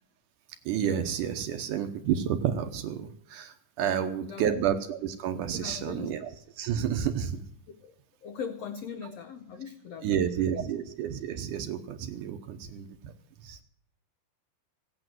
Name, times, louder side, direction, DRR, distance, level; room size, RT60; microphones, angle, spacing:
voice 1, 0.7-6.3 6.6-7.4 10.0-13.1 13.4-13.6, right 9 dB, 70° right, 7 dB, 2.2 m, -30 dB
voice 2, 3.9-4.6 5.5-6.1 7.8-7.9 8.2-10.6, left 6 dB, 85° left, 5 dB, 1.4 m, -40 dB
16.5 x 8.8 x 7.7 m, 0.65 s
omnidirectional pair, 4.3 m